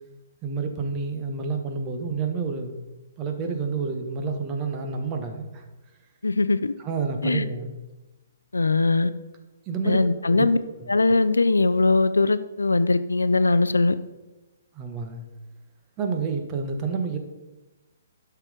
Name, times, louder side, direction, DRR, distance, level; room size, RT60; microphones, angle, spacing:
voice 1, 0.4-2.8 3.2-5.6 6.8-7.7 9.7-10.5 14.7-15.2 16.0-17.2, right 4 dB, 25° right, 1.4 m, -29 dB
voice 2, 6.2-6.7 7.2-7.4 8.5-9.1 9.8-10.6 10.9-13.9, left 3 dB, 80° left, 0.5 m, -21 dB
11.5 x 6.0 x 5.1 m
figure-of-eight pair, 130°, 0 cm